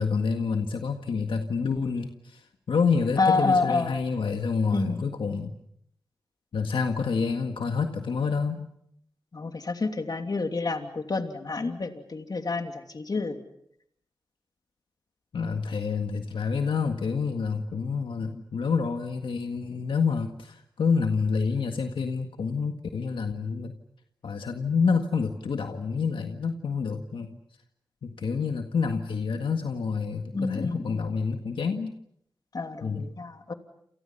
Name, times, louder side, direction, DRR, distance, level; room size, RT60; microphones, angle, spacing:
voice 1, 0.0-5.6 6.5-8.7 15.3-23.8 24.2-27.4 28.0-31.9 32.8-33.1, left 5 dB, 85° left, 5 dB, 1.8 m, -28 dB
voice 2, 3.2-4.0 4.7-5.1 9.3-13.4 30.3-31.0 32.5-33.5, left 3 dB, 50° left, 6 dB, 2.9 m, -28 dB
29.0 x 29.0 x 5.7 m, 0.71 s
wide cardioid pair, 70°, 8 cm